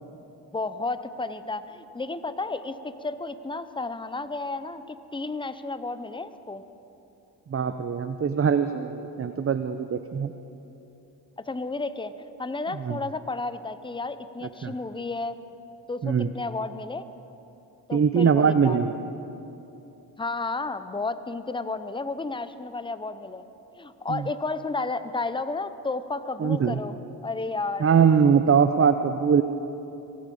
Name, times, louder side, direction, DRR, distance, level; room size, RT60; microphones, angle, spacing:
voice 1, 0.5-6.6 11.5-15.4 15.9-17.0 17.9-18.8 20.2-23.4 23.7-27.9, left 3 dB, 10° left, 12 dB, 0.8 m, -32 dB
voice 2, 7.5-10.3 12.8-13.0 14.6-14.7 16.0-16.3 17.9-19.0 24.1-24.2 26.4-26.8 27.8-29.4, right 6 dB, 30° right, 9 dB, 0.7 m, -22 dB
24.0 x 8.5 x 5.5 m, 2.9 s
supercardioid pair, 55°, 47 cm